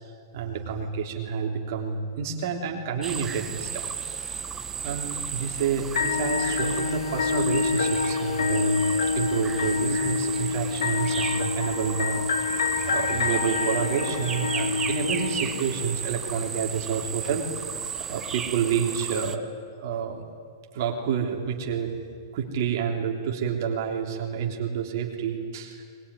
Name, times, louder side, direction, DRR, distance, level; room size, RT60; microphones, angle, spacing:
voice 1, 0.3-3.9 4.2-4.3 4.8-8.8 9.1-12.2 12.5-17.4 18.1-19.5 19.8-20.2 20.7-21.9 22.3-25.8, right 7 dB, 55° right, 1 dB, 3.3 m, -29 dB
sound 1, 3.0-19.4, right 7 dB, 15° right, 1.1 m, -34 dB
sound 2, 6.0-16.0, left 5 dB, 75° left, 1.7 m, -27 dB
21.5 x 21.5 x 9.9 m, 2.1 s
hypercardioid pair, 130°, 2 cm